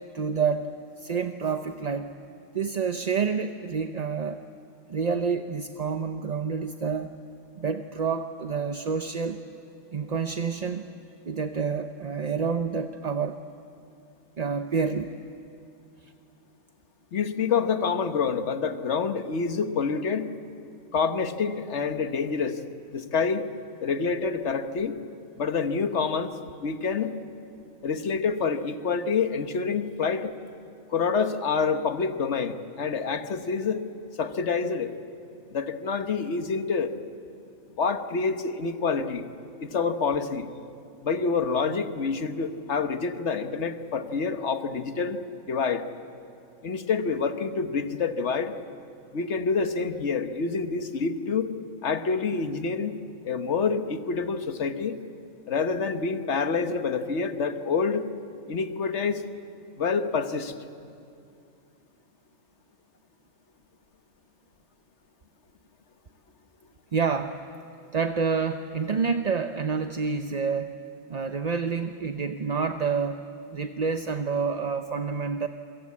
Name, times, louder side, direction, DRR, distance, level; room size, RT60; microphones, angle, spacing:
voice 1, 0.0-2.1 2.5-4.4 4.9-7.2 7.6-9.5 9.9-10.9 11.2-13.4 14.4-15.2 66.9-67.4 67.9-70.8 71.1-73.2 73.5-75.5, right 5 dB, 40° right, 7 dB, 0.6 m, -28 dB
voice 2, 17.1-20.3 20.9-22.6 22.9-23.5 23.8-25.0 25.4-26.3 26.6-27.1 27.8-30.3 30.9-33.8 34.2-34.9 35.5-36.9 37.8-39.2 39.6-40.5 41.0-45.2 45.5-45.8 46.6-48.5 49.1-51.5 51.8-53.0 53.2-55.0 55.5-58.1 58.5-59.2 59.8-60.5, left 5 dB, 55° left, 8 dB, 1.5 m, -27 dB
28.0 x 23.5 x 8.5 m, 2.5 s
omnidirectional pair, 1.4 m